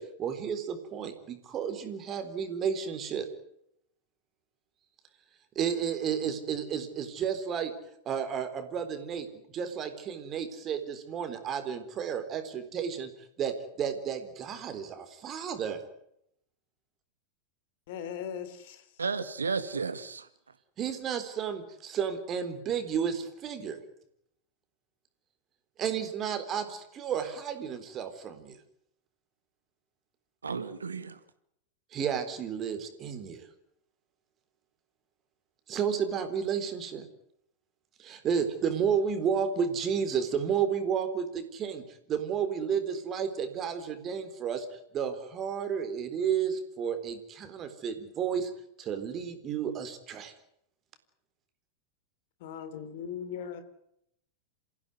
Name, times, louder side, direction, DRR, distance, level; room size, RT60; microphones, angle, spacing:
voice 1, 0.0-3.3 5.6-7.7 8.1-9.3 9.5-13.1 13.4-15.8 20.8-23.8 25.8-28.6 31.9-33.5 35.7-37.1 38.0-48.5 48.8-50.3, right 7 dB, 30° right, 3.9 m, -32 dB
voice 2, 17.9-19.0 52.4-53.6, left 8 dB, 50° left, 3.3 m, -39 dB
voice 3, 19.0-20.3 30.4-31.2, right 5 dB, 75° right, 2.0 m, -33 dB
28.0 x 16.0 x 9.5 m
figure-of-eight pair, 90°, 0 cm